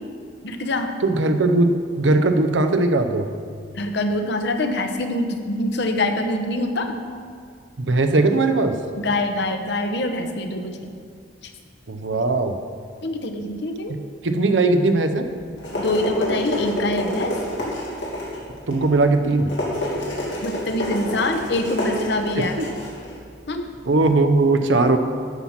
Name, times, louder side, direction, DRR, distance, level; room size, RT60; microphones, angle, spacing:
voice 1, 0.4-0.9 3.7-7.0 9.0-10.8 11.4-11.5 13.0-13.9 15.7-17.3 20.4-22.6 23.5-23.7, left 1 dB, 65° left, 6 dB, 1.0 m, -25 dB
voice 2, 1.0-3.3 7.8-8.8 11.9-12.6 14.2-15.3 18.7-19.5 22.4-22.7 23.9-25.0, right 2 dB, 80° right, 7 dB, 0.7 m, -19 dB
sound 1, 15.3-24.1, left 1 dB, 90° left, 2.9 m, -29 dB
13.0 x 5.8 x 5.8 m, 2.1 s
head